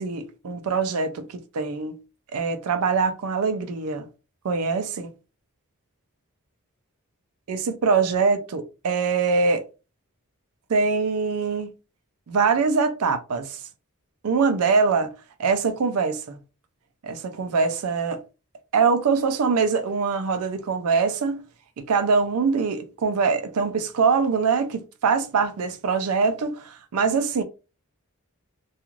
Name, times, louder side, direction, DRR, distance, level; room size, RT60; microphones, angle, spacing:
voice 1, 0.0-2.0 2.3-4.1 4.4-5.1 7.5-9.6 10.7-11.7 12.3-13.6 14.2-15.1 15.4-16.4 17.0-18.2 18.7-21.5 21.8-27.4, right 5 dB, 80° right, 0.4 m, -23 dB
2.4 x 2.3 x 3.0 m
head